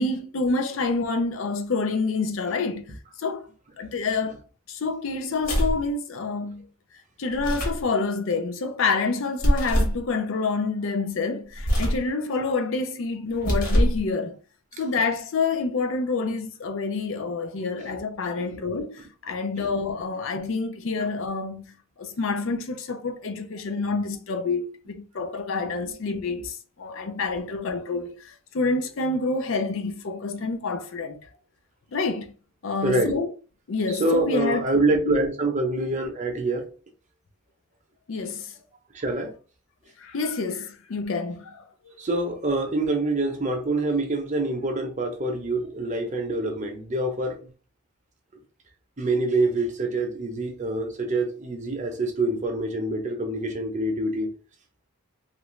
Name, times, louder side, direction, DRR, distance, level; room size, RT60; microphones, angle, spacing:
voice 1, 0.0-2.9 3.2-3.5 3.8-4.4 4.7-6.7 7.2-14.4 14.8-31.2 31.9-32.3 32.6-33.3 33.7-34.6 35.0-35.2 38.1-38.5 40.0-41.9, left 3 dB, 65° left, 0.5 m, -28 dB
sound 1, 5.4-5.9 7.3-7.9 9.4-10.0 11.6-12.1 13.3-14.0, equal, 40° left, 1.1 m, -23 dB
voice 2, 32.8-33.1 33.9-36.7 38.9-39.3 42.0-47.5 49.0-54.3, right 2 dB, 35° right, 0.7 m, -26 dB
3.0 x 2.5 x 3.1 m
head